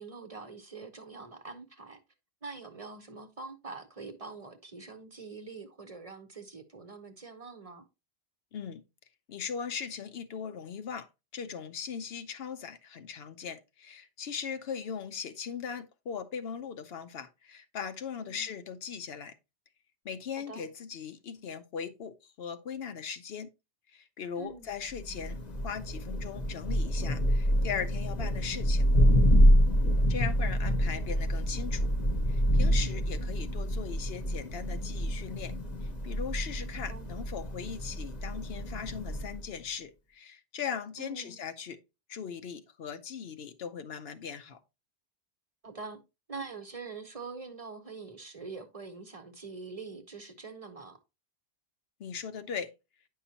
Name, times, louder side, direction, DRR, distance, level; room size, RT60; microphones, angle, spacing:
voice 1, 0.0-2.0 2.4-7.8 18.2-18.5 20.5-20.7 24.4-24.7 32.8-33.1 36.9-37.1 41.0-41.4 45.6-46.0 46.3-51.0, right 4 dB, 40° right, 0.8 m, -44 dB
voice 2, 9.3-19.3 20.0-23.5 23.9-25.4 25.6-28.9 30.1-31.9 32.3-35.5 35.8-41.8 42.1-44.6 52.0-52.7, left 7 dB, 70° left, 0.9 m, -39 dB
Thunder, 24.9-39.5, equal, 40° left, 1.0 m, -27 dB
9.2 x 5.6 x 2.7 m
omnidirectional pair, 1.1 m